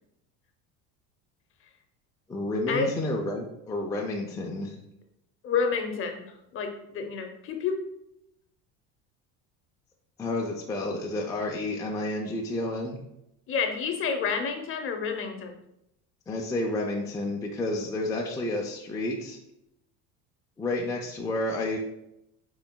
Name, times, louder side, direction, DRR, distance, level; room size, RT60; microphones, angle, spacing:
voice 1, 2.3-4.8 10.2-13.0 16.3-19.4 20.6-21.8, left 2 dB, 10° left, -1 dB, 0.4 m, -30 dB
voice 2, 5.4-6.2 6.5-7.8 13.5-15.6, left 5 dB, 35° left, 5 dB, 0.7 m, -29 dB
5.8 x 3.8 x 2.2 m, 0.82 s
supercardioid pair, 125°, 36 cm